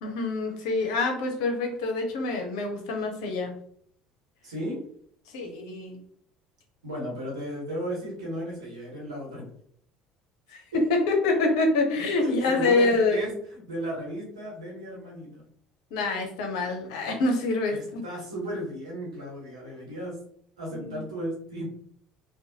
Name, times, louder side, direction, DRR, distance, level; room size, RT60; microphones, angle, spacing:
voice 1, 0.0-3.6 5.3-6.0 10.5-13.4 15.9-18.0 20.7-21.0, left 3 dB, 75° left, 3 dB, 0.6 m, -26 dB
voice 2, 4.4-4.8 6.8-9.5 10.7-10.8 12.2-15.4 17.7-20.2 20.6-21.6, equal, 85° right, -3 dB, 1.1 m, -35 dB
2.5 x 2.1 x 2.7 m, 0.63 s
hypercardioid pair, 65°, 3 cm